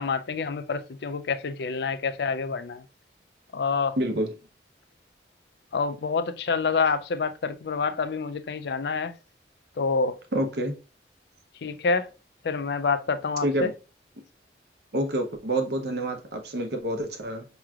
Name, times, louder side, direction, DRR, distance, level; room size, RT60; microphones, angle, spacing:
voice 1, 0.0-2.8 3.5-4.0 5.7-9.1 9.8-10.2 11.6-12.1 12.4-13.7, left 4 dB, 65° left, 0.4 m, -27 dB
voice 2, 4.0-4.3 10.3-10.7 13.4-13.7 14.9-17.5, right 1 dB, 65° right, 0.8 m, -27 dB
5.9 x 3.1 x 2.4 m
head